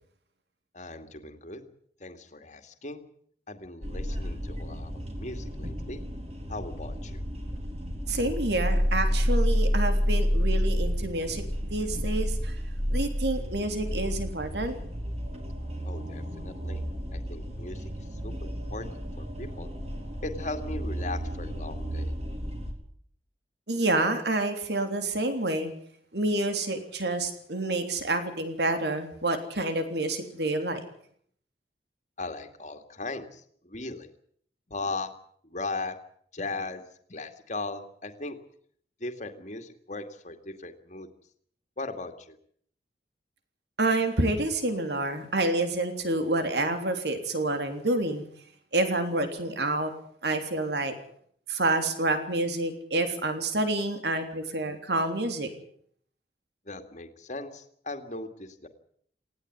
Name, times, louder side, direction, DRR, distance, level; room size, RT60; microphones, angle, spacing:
voice 1, 0.7-1.7 2.0-3.0 3.5-4.9 5.2-6.0 6.5-7.2 15.8-16.8 17.1-17.9 18.2-18.9 19.2-19.7 20.2-22.1 32.2-34.1 34.7-35.1 35.4-36.0 36.3-38.4 39.0-41.1 41.8-42.4 56.7-58.7, left 2 dB, 40° left, 7 dB, 2.3 m, -38 dB
sound 1, 3.8-22.7, equal, 35° right, 4.2 m, -30 dB
voice 2, 8.1-11.4 11.7-12.5 12.9-14.8 23.7-25.7 26.1-30.8 43.8-48.2 48.7-49.9 50.2-50.9 51.5-55.5, right 2 dB, 70° right, 7 dB, 3.4 m, -28 dB
19.0 x 16.0 x 9.7 m, 0.63 s
head